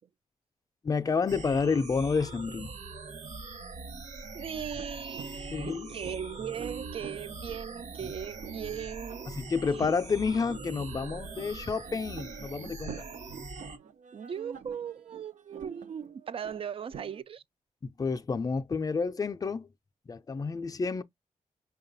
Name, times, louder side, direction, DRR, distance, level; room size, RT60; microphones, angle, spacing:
voice 1, 0.8-2.7 5.5-5.9 8.0-8.1 9.3-13.0 17.8-19.7 20.1-21.0, left 5 dB, 30° left, 0.4 m, -30 dB
sound 1, 1.3-13.8, right 3 dB, 65° right, 1.1 m, -43 dB
voice 2, 4.3-9.3 9.7-9.8 14.1-17.4, right 8 dB, 45° right, 0.4 m, -38 dB
sound 2, 4.8-17.2, right 7 dB, 85° right, 0.6 m, -47 dB
5.9 x 2.3 x 3.9 m
wide cardioid pair, 160°, 13 cm